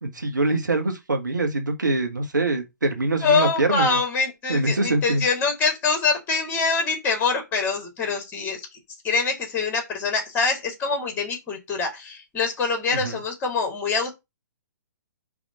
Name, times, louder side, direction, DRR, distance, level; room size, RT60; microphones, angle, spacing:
voice 1, 0.0-4.0 4.5-5.2 12.9-13.2, right 2 dB, 80° right, 1.6 m, -24 dB
voice 2, 3.2-8.7 9.0-14.1, left 4 dB, 20° left, 2.5 m, -24 dB
4.9 x 3.5 x 5.5 m
figure-of-eight pair, 125°, 10 cm